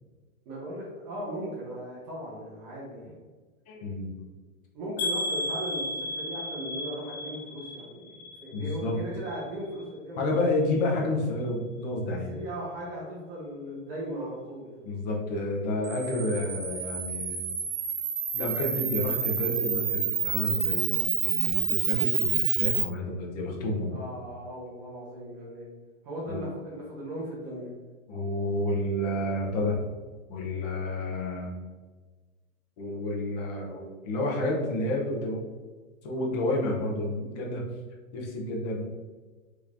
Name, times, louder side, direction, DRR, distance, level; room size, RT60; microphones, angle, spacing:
voice 1, 0.5-3.2 4.7-10.4 12.1-14.7 23.9-25.7 26.0-27.7, right 1 dB, 30° right, -5 dB, 0.7 m, -38 dB
voice 2, 3.7-4.1 8.5-9.0 10.2-12.3 14.8-17.4 18.3-24.0 26.3-26.4 28.1-29.8 30.3-31.5 32.8-35.4 36.0-37.6 38.1-38.8, left 1 dB, 30° left, -2 dB, 0.6 m, -30 dB
sound 1, 5.0-9.0 9.3-9.9 10.3-10.5 10.8-10.9, left 1 dB, 50° left, 1.1 m, -34 dB
Camera, 15.8-22.8, right 7 dB, 80° right, 0.8 m, -28 dB
3.5 x 3.1 x 2.4 m, 1.3 s
hypercardioid pair, 155°, 42 cm